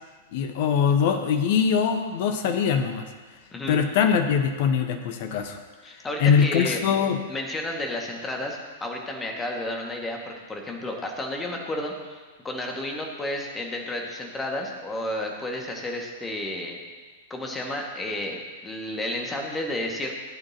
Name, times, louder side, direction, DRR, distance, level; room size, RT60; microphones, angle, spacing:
voice 1, 0.3-3.1 3.7-5.6 6.2-7.2, left 7 dB, 50° left, 7 dB, 1.1 m, -22 dB
voice 2, 3.5-3.8 5.8-6.8 7.3-16.8 17.3-20.2, left 1 dB, 15° left, 1 dB, 1.8 m, -32 dB
17.5 x 8.9 x 2.9 m, 1.4 s
figure-of-eight pair, 100°, 0 cm